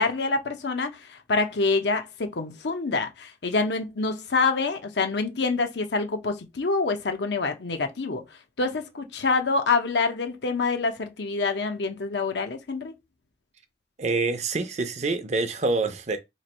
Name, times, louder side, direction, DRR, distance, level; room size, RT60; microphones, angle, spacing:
voice 1, 0.0-8.2 8.6-12.9, left 3 dB, 75° left, 0.7 m, -26 dB
voice 2, 14.0-16.2, right 3 dB, 40° right, 0.5 m, -26 dB
3.1 x 2.5 x 4.2 m
head